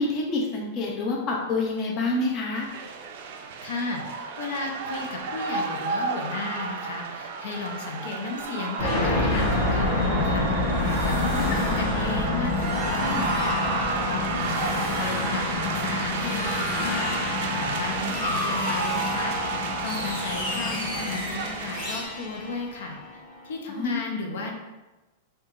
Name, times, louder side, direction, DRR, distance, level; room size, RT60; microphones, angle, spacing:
voice 1, 0.0-2.7 11.4-11.6 23.7-24.0, left 2 dB, 30° left, -1 dB, 0.5 m, -27 dB
sound 1, 2.5-22.1, right 5 dB, 55° right, 0.4 m, -33 dB
voice 2, 3.6-4.0 4.4-12.5 12.9-23.0 23.4-24.5, left 3 dB, 75° left, 2 dB, 0.6 m, -34 dB
sound 2, 8.8-23.5, left 2 dB, 50° left, 1.2 m, -27 dB
4.4 x 2.3 x 2.4 m, 1.1 s
supercardioid pair, 160°, 0 cm